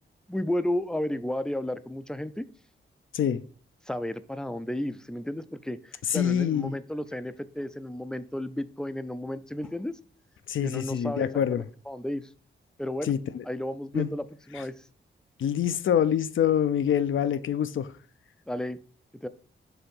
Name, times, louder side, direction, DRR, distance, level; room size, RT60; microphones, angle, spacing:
voice 1, 0.3-2.5 3.9-9.9 10.6-12.3 12.8-13.1 13.4-14.7 18.5-18.8 19.2-19.3, left 1 dB, 5° left, 0.5 m, -33 dB
voice 2, 6.1-6.7 10.5-11.6 13.0-13.4 13.9-14.1 14.5-14.6 15.4-17.9, left 9 dB, 70° left, 0.5 m, -25 dB
7.0 x 3.5 x 5.4 m
cardioid pair, 80°, 21 cm